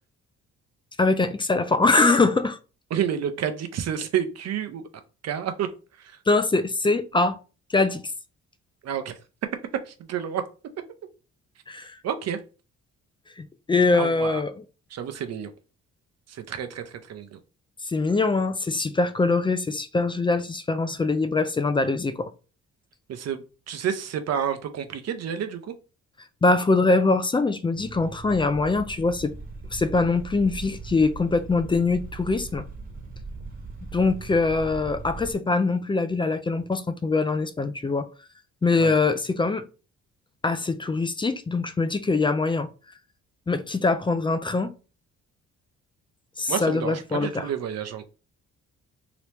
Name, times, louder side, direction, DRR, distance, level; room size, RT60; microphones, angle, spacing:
voice 1, 1.0-2.6 6.3-7.4 7.7-8.1 11.7-12.0 13.4-14.5 17.9-22.3 26.4-29.3 29.7-32.7 33.9-38.1 38.6-39.6 40.4-42.7 43.5-44.7 46.4-47.4, left 3 dB, 15° left, 0.3 m, -23 dB
voice 2, 2.9-4.9 5.2-5.7 5.9-6.2 8.8-9.1 9.8-10.4 12.0-12.4 13.9-14.4 14.9-15.5 16.3-17.4 23.1-25.7 38.8-38.9 46.5-48.0, right 8 dB, 55° right, 0.7 m, -30 dB
sound 1, 27.7-35.3, right 4 dB, 30° right, 1.1 m, -39 dB
2.9 x 2.9 x 3.3 m
cardioid pair, 90°, 30 cm